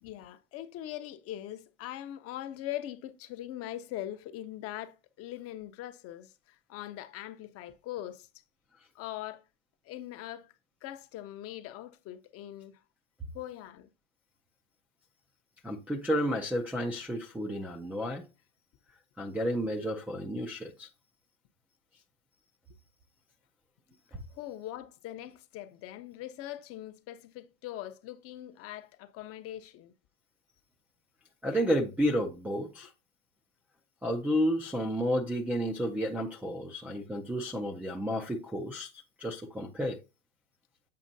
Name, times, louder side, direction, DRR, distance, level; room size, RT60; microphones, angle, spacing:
voice 1, 0.0-8.3 8.9-9.4 9.8-10.5 10.8-12.8 13.3-13.9 24.3-29.9, left 13 dB, 35° left, 0.6 m, -41 dB
voice 2, 15.6-18.3 19.2-20.9 31.4-32.9 34.0-38.9 39.2-40.0, equal, 5° right, 0.3 m, -31 dB
7.5 x 4.9 x 2.6 m
supercardioid pair, 125°, 40 cm